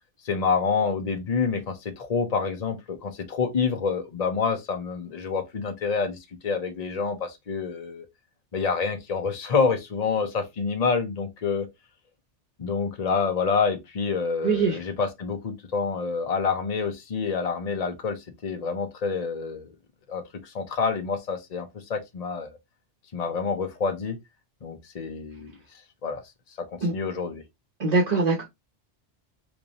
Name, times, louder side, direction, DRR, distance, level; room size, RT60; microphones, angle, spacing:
voice 1, 0.2-8.1 8.5-11.7 12.6-19.7 20.1-22.6 23.1-24.2 24.6-25.5 26.0-26.2 26.7-27.4, left 5 dB, 40° left, 0.8 m, -27 dB
voice 2, 14.4-14.8 26.8-26.9 27.8-28.4, right 4 dB, 40° right, 0.9 m, -22 dB
3.1 x 2.7 x 4.0 m
omnidirectional pair, 1.2 m